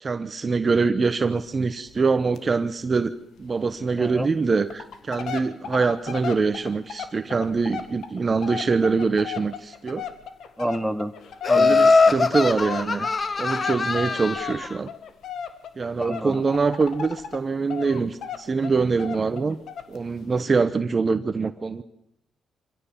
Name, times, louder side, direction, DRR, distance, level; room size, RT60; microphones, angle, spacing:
voice 1, 0.0-10.0 11.5-13.1 13.4-14.9 15.8-19.6 19.9-21.8, right 4 dB, 35° right, 10 dB, 1.0 m, -24 dB
sound 1, 1.0-1.2 1.5-1.6 1.9-2.0 2.4-2.5 2.8-2.9 3.4-3.5 4.1-4.2 4.6-17.4 17.7-20.0 20.4-20.5, left 7 dB, 70° left, 1.8 m, -36 dB
voice 2, 10.6-11.1 11.5-11.8 16.0-16.3, equal, ahead, 8 dB, 1.5 m, -27 dB
Laughter, 11.4-14.7, left 4 dB, 30° left, 0.9 m, -21 dB
25.0 x 16.5 x 7.2 m, 0.78 s
cardioid pair, 90°, 0 cm